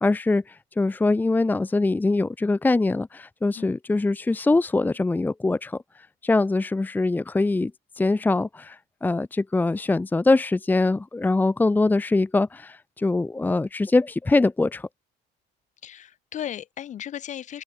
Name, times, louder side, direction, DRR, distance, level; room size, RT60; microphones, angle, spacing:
voice 1, 0.0-7.7 8.0-14.9, left 2 dB, 10° left, 1.1 m, -23 dB
voice 2, 15.8-17.6, left 10 dB, 40° left, 2.5 m, -35 dB
open air
cardioid pair, 165°, 19 cm